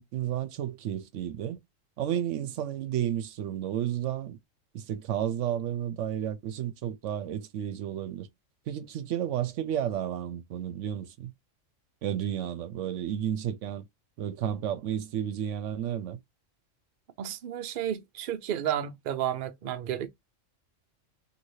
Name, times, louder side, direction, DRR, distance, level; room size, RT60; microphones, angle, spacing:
voice 1, 0.0-1.6 2.0-4.4 4.7-8.3 8.7-11.3 12.0-13.9 14.2-16.2, right 10 dB, 75° right, 0.9 m, -32 dB
voice 2, 17.2-20.1, right 10 dB, 55° right, 0.6 m, -32 dB
3.2 x 2.7 x 2.6 m
omnidirectional pair, 1.3 m